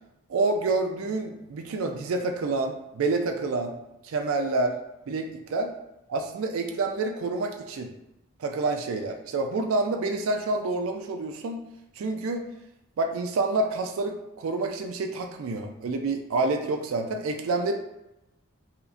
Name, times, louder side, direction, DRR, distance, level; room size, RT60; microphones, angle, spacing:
voice 1, 0.3-3.8 4.0-4.7 5.1-5.7 6.1-7.9 8.4-11.6 12.0-12.5 13.0-17.7, right 3 dB, 75° right, 5 dB, 0.4 m, -28 dB
5.5 x 2.1 x 2.5 m, 0.90 s
head